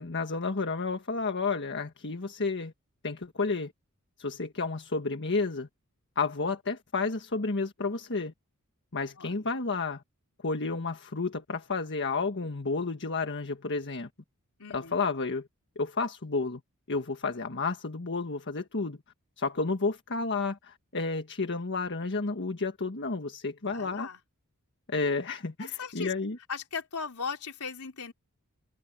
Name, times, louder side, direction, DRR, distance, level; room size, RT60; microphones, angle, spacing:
voice 1, 0.0-2.7 3.0-3.7 4.2-5.7 6.1-8.3 8.9-10.0 10.4-14.1 14.7-15.5 15.7-16.6 16.9-19.0 19.4-24.1 24.9-26.4, left 4 dB, 55° left, 1.5 m, -31 dB
voice 2, 9.2-9.5 14.6-15.0 23.6-24.2 25.6-26.1 26.5-28.1, left 5 dB, 80° left, 4.0 m, -38 dB
head